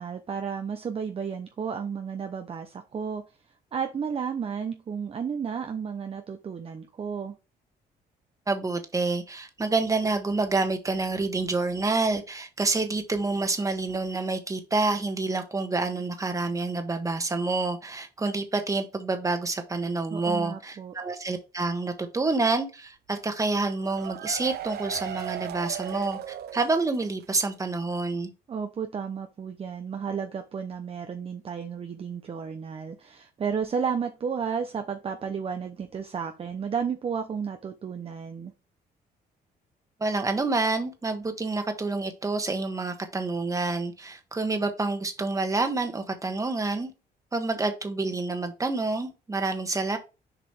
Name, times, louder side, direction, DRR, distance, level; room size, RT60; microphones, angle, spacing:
voice 1, 0.0-3.2 3.7-7.3 20.1-21.0 28.5-38.5, right 6 dB, 35° right, 7 dB, 0.8 m, -32 dB
voice 2, 8.5-26.2 26.5-28.3 40.0-46.9 47.3-50.0, right 3 dB, 20° right, 6 dB, 1.4 m, -28 dB
sound 1, 23.6-27.2 27.5-27.6 28.0-28.1, right 11 dB, 70° right, 0.6 m, -37 dB
6.9 x 4.9 x 3.3 m, 0.29 s
cardioid pair, 110°, 17 cm